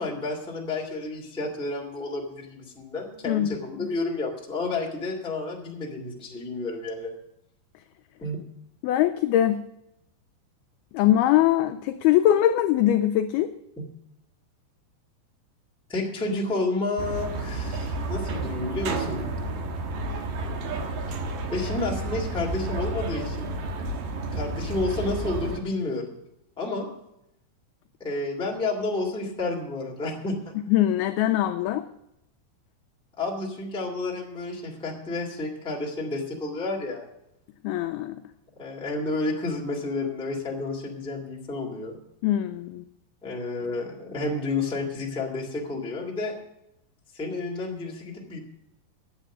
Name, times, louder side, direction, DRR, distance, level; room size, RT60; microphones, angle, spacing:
voice 1, 0.0-7.1 8.2-8.4 13.8-13.9 15.9-19.3 21.5-23.5 24.3-26.2 26.6-26.8 28.0-30.5 33.2-37.0 38.5-41.9 43.2-46.3 47.1-48.4, left 2 dB, ahead, -2 dB, 1.3 m, -30 dB
voice 2, 8.8-9.6 10.9-13.5 30.7-31.9 37.6-38.2 42.2-42.8, left 12 dB, 85° left, 8 dB, 2.2 m, -22 dB
sound 1, 17.0-25.6, right 2 dB, 65° right, 2.5 m, -31 dB
11.0 x 8.4 x 6.2 m, 0.83 s
omnidirectional pair, 5.0 m